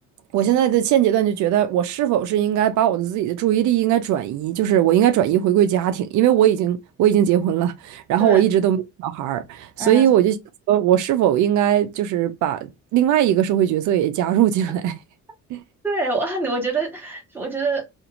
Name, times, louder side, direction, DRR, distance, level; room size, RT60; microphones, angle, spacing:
voice 1, 0.3-10.3 10.7-14.9 15.5-15.6, right 11 dB, 75° right, 0.5 m, -19 dB
voice 2, 9.8-10.1 15.8-17.9, right 3 dB, 5° right, 1.0 m, -25 dB
2.5 x 2.5 x 2.8 m
cardioid pair, 170°, 29 cm